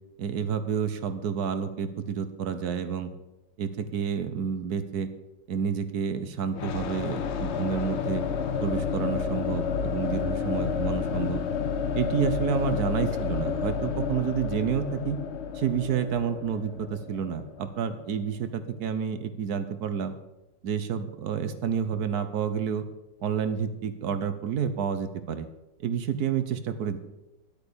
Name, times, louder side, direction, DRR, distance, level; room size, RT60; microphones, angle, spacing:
voice 1, 0.2-3.1 3.6-5.1 5.5-8.2 8.6-11.4 11.9-15.2 15.5-20.1 20.6-22.8 23.2-25.5 25.8-27.0, right 7 dB, 65° right, 11 dB, 1.3 m, -29 dB
sound 1, 6.5-18.3, left 6 dB, 55° left, 0.7 m, -30 dB
11.0 x 8.3 x 6.8 m, 0.99 s
omnidirectional pair, 2.0 m